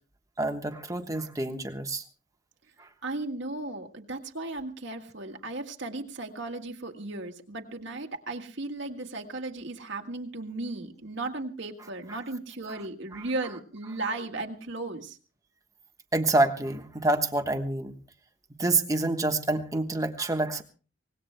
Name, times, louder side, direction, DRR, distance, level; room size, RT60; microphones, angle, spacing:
voice 1, 0.4-2.0 2.8-2.9 12.1-12.2 16.1-17.9 18.6-20.6, right 2 dB, 15° right, 6 dB, 1.2 m, -27 dB
voice 2, 3.0-15.2, right 2 dB, 65° right, 2 dB, 1.8 m, -36 dB
24.5 x 20.0 x 2.2 m, 0.39 s
head